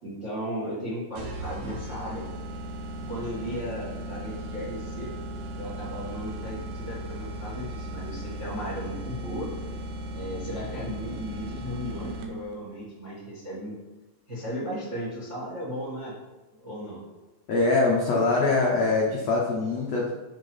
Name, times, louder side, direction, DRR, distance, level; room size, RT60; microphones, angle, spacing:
voice 1, 0.0-2.2 3.0-5.1 5.5-9.5 10.1-13.7 14.3-16.2 16.5-17.0, equal, 35° right, -6 dB, 1.1 m, -35 dB
sound 1, 1.2-12.6, right 1 dB, 75° right, 1.8 m, -37 dB
voice 2, 17.5-20.1, left 3 dB, 85° left, -3 dB, 1.4 m, -23 dB
6.2 x 5.9 x 5.4 m, 1.1 s
omnidirectional pair, 4.7 m